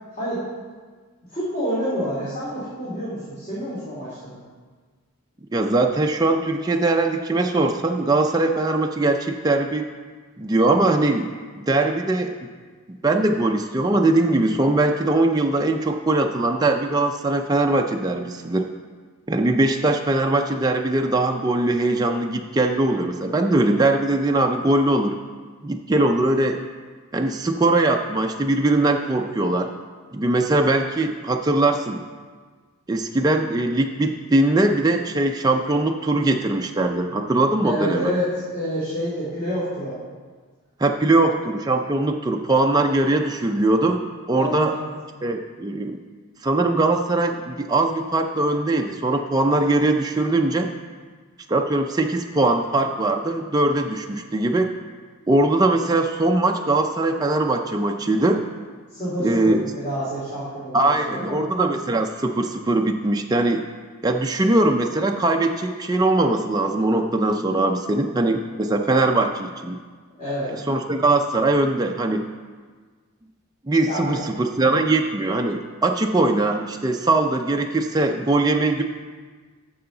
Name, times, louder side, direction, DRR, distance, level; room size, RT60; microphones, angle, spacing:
voice 1, 0.1-0.4 1.3-4.4 37.6-39.9 44.4-44.9 58.9-61.4 70.2-70.5 73.9-74.2, equal, 35° left, -10 dB, 2.5 m, -28 dB
voice 2, 5.5-9.9 10.4-12.3 12.9-18.7 19.3-25.2 25.6-26.6 27.1-29.7 30.1-32.0 32.9-38.1 40.8-44.0 44.3-44.7 45.2-46.0 46.4-50.7 51.5-54.7 55.3-58.4 59.2-59.7 60.7-63.6 64.0-69.8 70.7-72.3 73.7-78.8, right 2 dB, 15° right, 3 dB, 0.4 m, -21 dB
14.0 x 5.6 x 3.8 m, 1.5 s
head